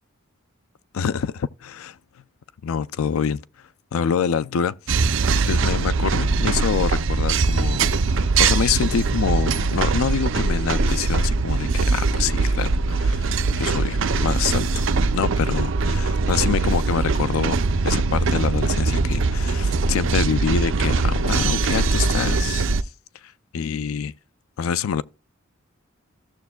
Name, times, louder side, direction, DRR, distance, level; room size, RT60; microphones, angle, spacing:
voice 1, 0.9-2.0 2.6-3.4 3.9-4.8 5.4-7.9 8.4-14.9 15.1-22.6 23.5-24.1 24.6-25.0, left 7 dB, 90° left, 0.4 m, -26 dB
sound 1, 4.9-22.8, right 3 dB, 65° right, 0.5 m, -21 dB
15.0 x 6.9 x 2.2 m
head